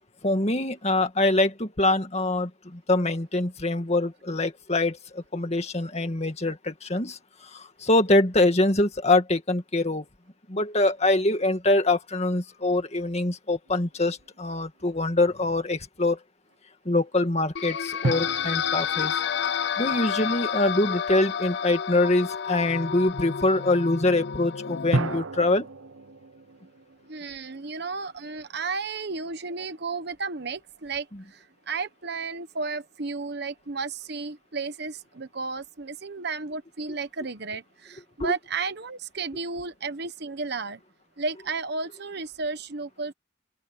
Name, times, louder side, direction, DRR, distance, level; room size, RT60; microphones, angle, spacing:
voice 1, 0.2-10.0 10.5-16.2 16.9-19.2 19.8-25.7 38.2-38.3, left 2 dB, 35° left, 2.1 m, -24 dB
sound 1, 13.7-14.4 18.0-20.9 24.9-28.2, right 2 dB, 85° right, 0.9 m, -34 dB
sound 2, 17.6-25.2, left 7 dB, 60° left, 0.6 m, -30 dB
voice 2, 27.1-31.1 31.3-40.8 41.2-43.1, right 4 dB, 55° right, 1.2 m, -33 dB
head